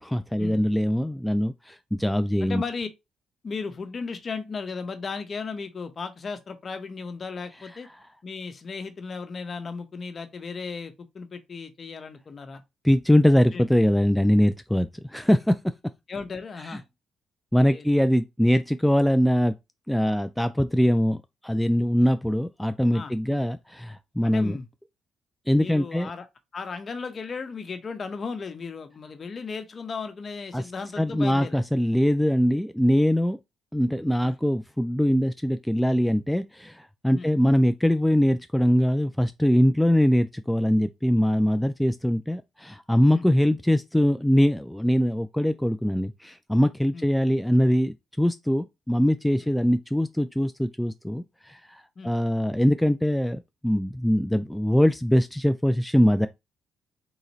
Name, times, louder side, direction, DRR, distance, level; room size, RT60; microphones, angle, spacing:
voice 1, 0.0-2.6 12.8-15.7 16.7-16.8 17.5-19.5 19.9-24.6 25.5-26.1 30.5-30.7 31.0-33.4 33.7-56.3, equal, 5° left, 0.3 m, -22 dB
voice 2, 2.4-2.9 3.4-7.9 8.2-12.6 13.3-13.6 16.1-16.8 17.6-17.9 22.9-23.5 24.2-24.7 25.6-26.3 26.5-31.6 34.2-34.3 37.1-37.3 43.1-43.3 46.9-47.1 49.4-49.5 52.0-52.1, left 5 dB, 40° left, 1.0 m, -35 dB
3.9 x 2.9 x 4.1 m
cardioid pair, 90°, 0 cm